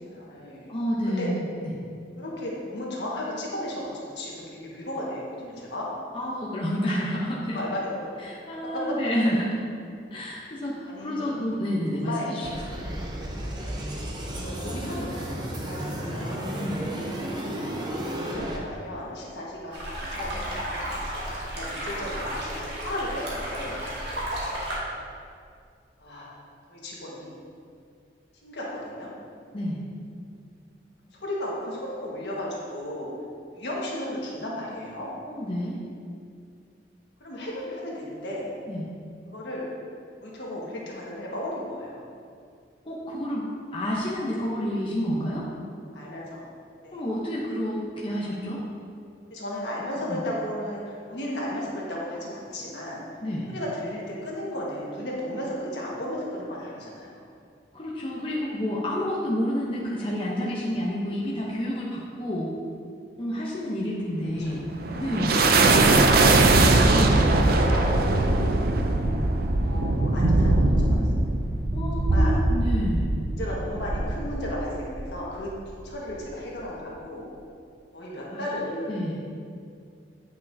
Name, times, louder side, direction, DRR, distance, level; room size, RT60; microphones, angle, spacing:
voice 1, 0.1-1.3 2.2-5.9 7.5-8.1 8.6-9.0 10.9-11.3 11.9-12.3 14.3-16.6 18.1-20.9 21.4-23.8 26.0-26.3 26.7-27.3 28.4-29.1 31.2-33.1 33.5-35.1 37.2-38.5 39.3-39.7 40.2-42.1 45.9-46.4 46.8-47.0 49.3-53.0 53.5-57.2 60.0-60.1 64.4-64.5 67.5-67.9 69.5-70.9 72.0-72.4 73.3-75.5 75.8-77.3 77.9-79.1, left 1 dB, 75° left, -5 dB, 1.5 m, -34 dB
voice 2, 0.7-1.7 6.1-7.6 8.2-9.6 10.1-12.5 16.6-16.9 29.5-29.8 35.3-35.8 38.7-38.8 42.9-43.5 43.7-45.5 46.9-48.6 50.1-50.2 53.2-53.5 57.7-62.5 63.2-64.7 64.9-65.5 66.6-67.3 71.7-73.1 78.3-78.5 78.9-79.2, equal, 30° left, -5 dB, 0.8 m, -29 dB
sound 1, 12.4-18.6, right 1 dB, 25° right, 0.8 m, -33 dB
sound 2, 19.7-24.8, equal, 80° right, 1.7 m, -33 dB
sound 3, 64.4-75.2, right 2 dB, 55° right, 0.5 m, -21 dB
9.0 x 5.5 x 2.7 m, 2.3 s
head